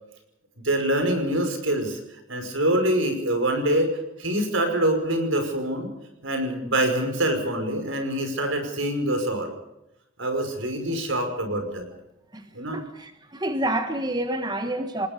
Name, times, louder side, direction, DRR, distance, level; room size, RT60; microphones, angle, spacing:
voice 1, 0.6-2.0 2.3-5.9 6.2-9.5 10.2-11.9 12.5-12.8, right 1 dB, 75° right, 5.6 m, -25 dB
voice 2, 12.3-15.1, right 1 dB, 20° right, 1.4 m, -28 dB
27.5 x 20.0 x 5.3 m
head